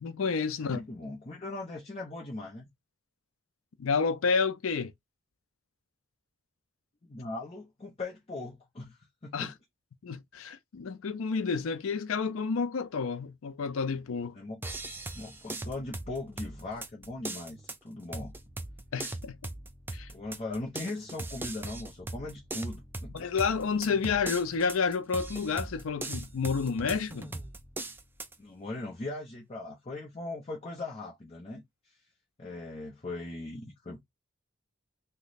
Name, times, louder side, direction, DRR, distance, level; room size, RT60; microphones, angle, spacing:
voice 1, 0.0-0.8 3.8-4.9 9.3-9.5 10.0-14.4 18.9-19.4 19.9-20.1 23.1-27.3, left 5 dB, 90° left, 0.5 m, -30 dB
voice 2, 0.6-2.7 7.0-9.6 14.3-14.6 15.1-18.3 20.1-23.3 28.4-32.0 32.4-34.0, left 2 dB, 30° left, 0.7 m, -39 dB
sound 1, 14.6-28.4, right 2 dB, 10° right, 0.4 m, -40 dB
3.0 x 2.2 x 3.9 m
head